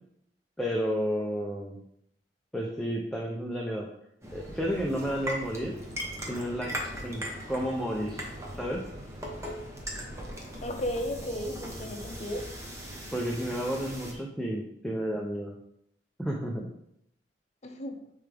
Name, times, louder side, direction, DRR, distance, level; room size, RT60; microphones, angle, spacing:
voice 1, 0.6-1.8 2.5-3.9 4.3-5.7 6.3-6.7 7.0-7.2 7.5-8.2 8.6-8.8 13.1-15.5 16.2-16.6, equal, 5° left, -2 dB, 0.6 m, -31 dB
sound 1, 4.2-14.1, equal, 15° right, 1.1 m, -39 dB
voice 2, 10.6-12.5 17.6-18.1, left 1 dB, 40° left, 4 dB, 0.8 m, -34 dB
9.3 x 3.4 x 3.5 m, 0.75 s
head